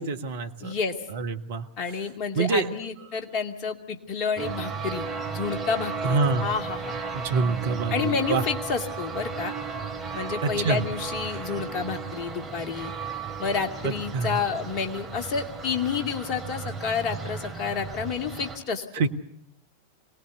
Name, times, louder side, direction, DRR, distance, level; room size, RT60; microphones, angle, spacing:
voice 1, 0.0-0.8 1.1-1.7 2.3-2.7 6.0-6.5 7.1-8.4 10.4-10.8 13.8-14.3 18.9-19.1, right 4 dB, 55° right, 7 dB, 1.5 m, -26 dB
voice 2, 0.6-1.0 1.8-7.0 7.9-9.5 10.1-12.9 13.4-18.9, left 6 dB, 40° left, 6 dB, 2.3 m, -30 dB
sound 1, 4.4-18.6, right 5 dB, 20° right, 3.2 m, -35 dB
24.5 x 18.5 x 8.1 m, 0.71 s
figure-of-eight pair, 90°, 0 cm